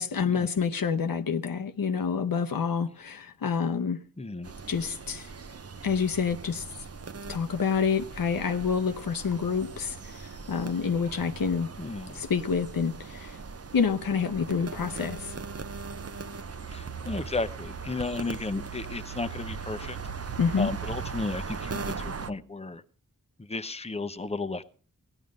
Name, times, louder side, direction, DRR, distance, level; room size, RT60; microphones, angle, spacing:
voice 1, 0.0-4.0 4.7-5.3 5.8-6.7 7.3-11.7 12.1-13.4 13.7-15.3 20.4-20.7, left 6 dB, 85° left, 0.8 m, -28 dB
voice 2, 4.2-4.5 11.8-12.2 16.7-20.0 20.6-22.8 23.4-24.6, left 3 dB, 20° left, 0.8 m, -34 dB
sound 1, 4.4-22.3, right 5 dB, 45° right, 0.7 m, -39 dB
16.5 x 11.0 x 5.2 m
wide cardioid pair, 65°, 34 cm